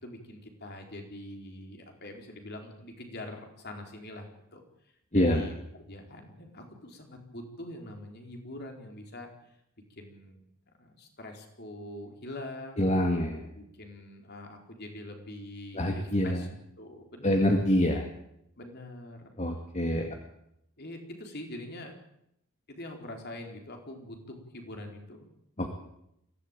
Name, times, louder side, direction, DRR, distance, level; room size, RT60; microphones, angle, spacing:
voice 1, 0.0-4.6 5.1-9.3 9.9-10.4 10.8-12.9 13.5-16.5 16.8-17.6 18.6-19.3 19.9-20.1 20.8-21.9 22.7-25.3, left 1 dB, 50° left, 3 dB, 4.4 m, -44 dB
voice 2, 5.1-5.5 12.8-13.4 15.7-16.4 17.2-18.0 19.4-20.1 25.6-25.7, left 1 dB, 30° left, 3 dB, 2.1 m, -25 dB
23.0 x 16.5 x 9.1 m, 0.79 s
head